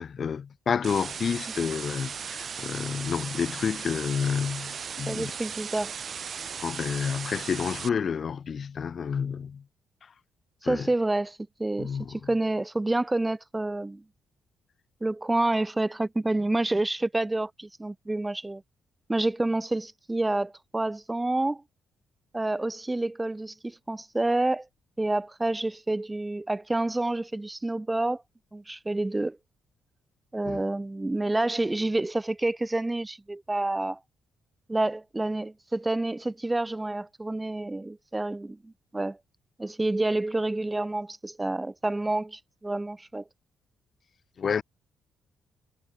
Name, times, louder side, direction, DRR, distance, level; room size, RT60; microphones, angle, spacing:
voice 1, 0.0-5.3 6.4-9.6 10.6-10.9 11.8-12.1 30.5-30.6 44.4-44.6, left 6 dB, 50° left, 0.9 m, -30 dB
sound 1, 0.8-7.9, right 7 dB, 50° right, 0.9 m, -37 dB
voice 2, 5.1-5.9 10.6-14.0 15.0-18.6 19.1-21.6 22.3-24.7 25.0-28.2 28.5-29.4 30.3-34.0 34.7-39.2 39.6-43.2, right 2 dB, 15° right, 1.1 m, -28 dB
cardioid pair, 90°, 0 cm